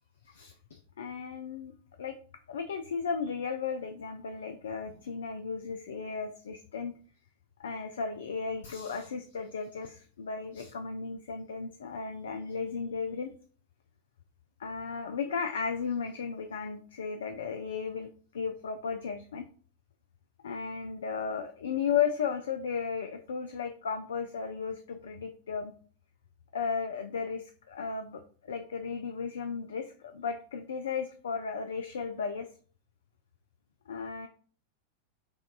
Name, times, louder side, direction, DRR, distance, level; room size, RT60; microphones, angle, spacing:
voice 1, 0.2-1.7 2.0-2.2 2.5-6.9 7.6-13.3 14.6-19.4 20.4-25.7 26.5-32.5 33.9-34.3, left 6 dB, 65° left, 7 dB, 0.3 m, -35 dB
6.1 x 2.3 x 2.3 m, 0.42 s
figure-of-eight pair, 90°, 0 cm